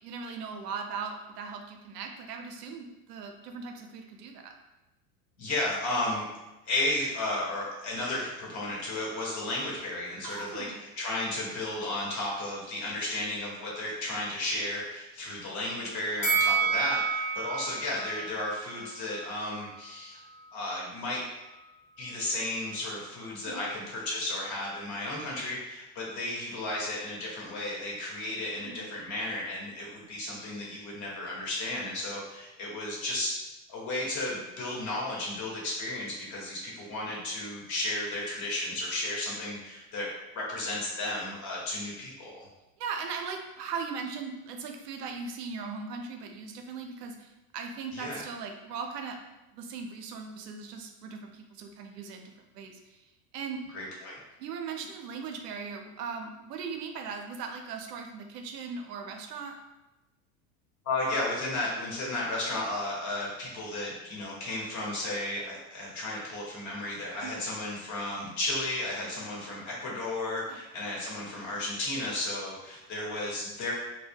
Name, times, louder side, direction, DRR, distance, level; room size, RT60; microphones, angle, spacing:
voice 1, 0.0-4.5 10.2-10.8 23.4-23.6 28.6-28.9 42.8-49.2 49.5-52.2 52.5-53.6 54.4-59.6 67.2-67.3 70.5-70.6, right 5 dB, 90° right, 4 dB, 0.6 m, -39 dB
voice 2, 5.4-6.3 6.7-20.2 20.5-21.2 22.0-33.3 33.7-40.1 40.3-42.5 47.9-48.2 53.7-54.1 60.8-73.7, left 2 dB, 40° left, -4 dB, 1.1 m, -33 dB
Bell, 16.2-19.4 19.8-19.9, right 5 dB, 15° left, 0.4 m, -30 dB
2.2 x 2.1 x 3.4 m, 1.0 s
hypercardioid pair, 100°, 47 cm